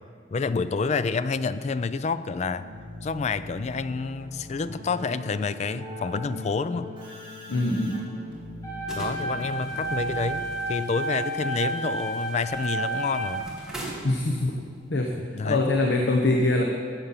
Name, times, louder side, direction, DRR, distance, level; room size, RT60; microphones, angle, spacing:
voice 1, 0.3-2.7 3.0-6.9 8.9-13.5 15.3-15.7, left 4 dB, 35° left, 14 dB, 0.3 m, -28 dB
Keyboard (musical), 2.6-10.9, left 1 dB, 25° right, 2.7 m, -41 dB
voice 2, 7.5-8.1 14.0-14.6 14.9-16.6, left 2 dB, 65° left, 2 dB, 0.9 m, -24 dB
sound 1, 8.6-13.6, right 2 dB, 20° left, 2.2 m, -31 dB
sound 2, 8.9-14.9, right 1 dB, 5° right, 2.0 m, -42 dB
14.0 x 7.4 x 5.6 m, 2.1 s
head